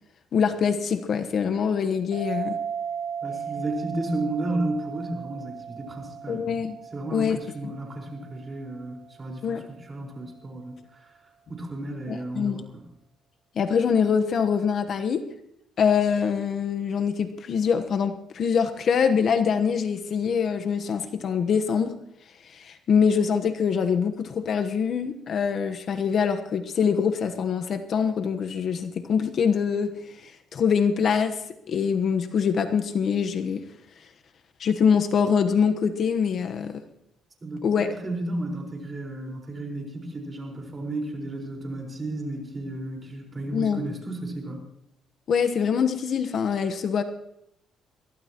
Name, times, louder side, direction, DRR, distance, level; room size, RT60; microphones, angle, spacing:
voice 1, 0.3-2.6 6.3-6.8 7.1-7.4 7.6-7.7 9.4-9.6 12.1-12.6 13.5-15.2 15.8-21.9 22.5-29.9 30.2-31.4 31.7-33.6 34.6-36.8 37.6-38.0 43.5-43.8 45.3-47.0, left 6 dB, 55° left, 7 dB, 1.1 m, -24 dB
sound 1, 2.1-9.2, right 7 dB, 90° right, 7.2 m, -36 dB
voice 2, 3.2-6.6 6.9-10.8 11.5-12.8 37.4-44.6, right 2 dB, 30° right, 0 dB, 4.8 m, -33 dB
22.0 x 15.0 x 3.0 m, 0.77 s
cardioid pair, 95°, 0 cm